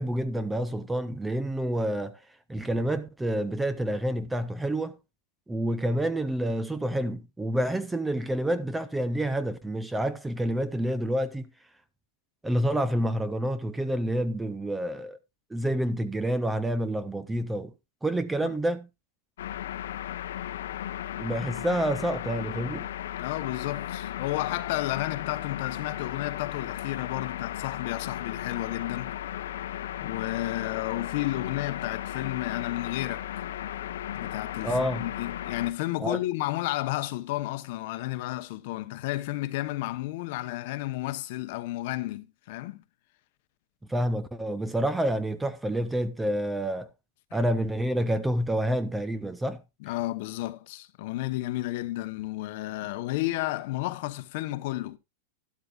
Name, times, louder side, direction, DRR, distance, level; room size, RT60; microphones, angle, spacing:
voice 1, 0.0-2.2 2.5-5.0 5.5-11.5 12.4-15.2 15.5-17.7 18.0-18.9 21.2-22.9 34.6-35.1 36.0-36.2 43.9-46.9 47.3-49.6, right 1 dB, 5° right, 0.5 m, -28 dB
sound 1, 19.4-35.7, left 11 dB, 75° left, 0.9 m, -36 dB
voice 2, 23.2-29.1 30.0-33.4 34.1-42.8 49.8-55.0, left 17 dB, 50° left, 0.9 m, -32 dB
12.0 x 11.5 x 2.4 m
supercardioid pair, 160°, 0 cm